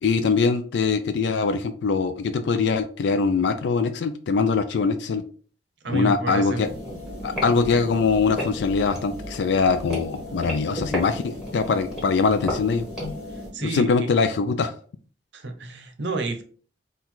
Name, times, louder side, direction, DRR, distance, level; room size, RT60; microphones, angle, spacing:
voice 1, 0.0-5.2 5.9-6.7 7.2-12.8 13.6-14.7, left 4 dB, 75° left, 9 dB, 0.4 m, -22 dB
voice 2, 5.8-6.7 7.5-7.9 13.3-14.1 15.3-16.4, right 3 dB, 85° right, 6 dB, 0.8 m, -30 dB
sound 1, 6.6-13.5, left 1 dB, 5° right, 1.6 m, -33 dB
3.9 x 2.3 x 4.4 m, 0.43 s
head